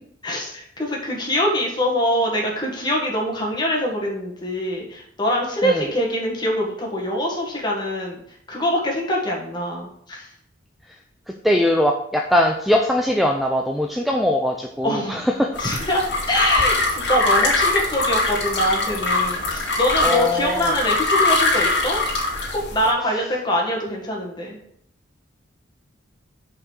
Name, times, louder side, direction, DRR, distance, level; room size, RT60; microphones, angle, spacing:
voice 1, 0.2-8.2 8.5-10.3 14.8-15.3 15.6-22.0 22.5-24.6, equal, 20° left, -2 dB, 1.8 m, -24 dB
voice 2, 11.4-15.5 20.0-20.7, left 1 dB, ahead, 2 dB, 0.5 m, -21 dB
sound 1, 15.5-22.9, left 2 dB, 55° left, 2.2 m, -22 dB
6.0 x 5.4 x 6.4 m, 0.70 s
head